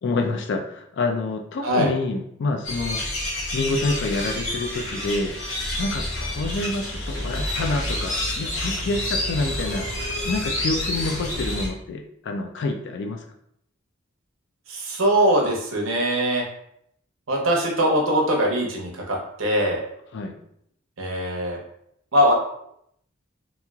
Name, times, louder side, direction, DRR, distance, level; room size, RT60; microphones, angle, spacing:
voice 1, 0.0-3.0 3.5-5.3 5.8-9.9 10.2-13.2 20.1-20.3, left 3 dB, 60° left, 4 dB, 0.3 m, -27 dB
sound 1, 2.6-11.7, left 1 dB, 80° left, 0.9 m, -28 dB
voice 2, 14.7-16.4 17.3-19.8 21.0-21.6 22.1-22.3, equal, 75° right, 0 dB, 0.7 m, -21 dB
2.9 x 2.7 x 2.3 m, 0.72 s
head